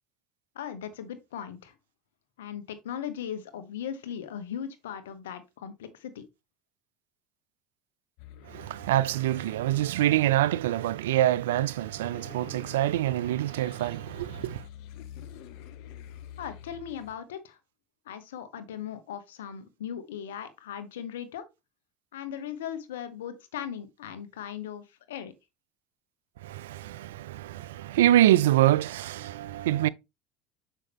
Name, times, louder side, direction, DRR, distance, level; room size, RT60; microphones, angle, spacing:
voice 1, 0.5-1.7 2.4-6.2 16.4-17.6 18.1-21.4 22.1-25.3, left 9 dB, 90° left, 1.1 m, -38 dB
sound 1, 8.2-17.1, left 10 dB, 70° left, 0.8 m, -48 dB
voice 2, 8.5-14.7 26.4-29.9, right 13 dB, 85° right, 0.3 m, -25 dB
6.5 x 5.5 x 3.4 m
supercardioid pair, 90°, 0 cm